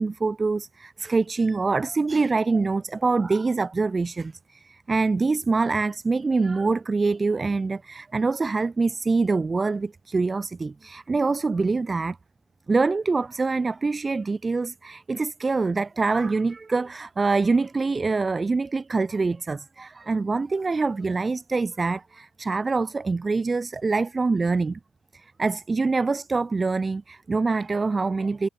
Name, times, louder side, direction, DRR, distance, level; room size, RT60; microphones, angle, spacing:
voice 1, 0.0-12.2 12.7-24.8 25.1-28.5, right 3 dB, 25° right, 1.4 m, -25 dB
cardioid pair, 125°, 0 cm